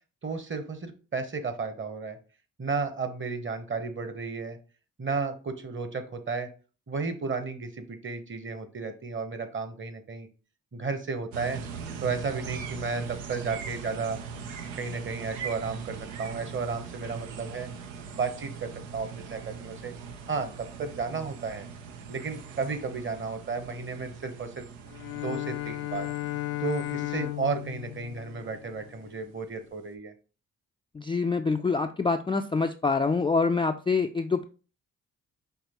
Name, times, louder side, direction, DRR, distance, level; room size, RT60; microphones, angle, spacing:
voice 1, 0.2-2.2 2.6-4.6 5.0-6.5 6.9-10.3 10.7-11.6 12.0-14.2 14.7-17.7 18.1-19.9 20.3-21.7 22.1-24.6 25.2-26.1 26.6-30.1, right 4 dB, 35° right, 9 dB, 1.0 m, -33 dB
sound 1, 11.3-29.3, right 6 dB, 90° right, 0.5 m, -41 dB
Bowed string instrument, 24.9-29.0, left 17 dB, 75° left, 0.5 m, -35 dB
voice 2, 30.9-34.4, left 4 dB, 15° left, 5 dB, 0.3 m, -26 dB
5.9 x 2.9 x 2.9 m, 0.36 s
hypercardioid pair, 40°, 37 cm